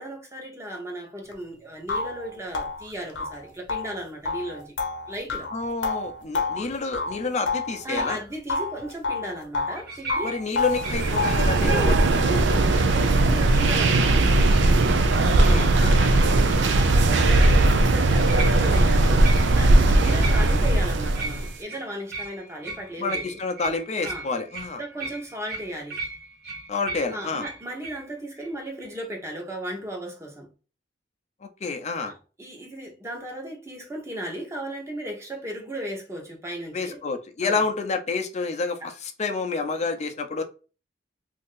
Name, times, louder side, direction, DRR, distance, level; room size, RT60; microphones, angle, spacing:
voice 1, 0.0-4.7 5.1-5.5 7.8-10.4 11.6-14.5 15.7-19.3 19.5-23.4 24.0-24.3 24.8-26.0 27.1-30.5 32.0-37.0 37.4-37.6 38.8-38.9 39.8-39.9, right 1 dB, 15° right, 0.9 m, -36 dB
sound 1, 1.3-1.4 1.9-8.2 8.5-9.8 10.1-11.5, left 4 dB, 85° left, 0.7 m, -29 dB
voice 2, 5.5-8.2 10.2-11.9 15.1-16.1 20.0-20.2 23.0-24.8 26.7-27.5 31.6-32.1 36.7-40.4, left 4 dB, 40° left, 0.6 m, -29 dB
sound 2, 9.7-12.2 12.8-13.2 17.4-17.7 18.3-18.9 19.2-19.7 20.2-20.8 21.1-28.0 28.4-28.5 28.8-28.9, right 3 dB, 60° right, 1.1 m, -37 dB
sound 3, 10.7-21.5, right 2 dB, 85° right, 0.5 m, -19 dB
2.9 x 2.6 x 3.7 m
head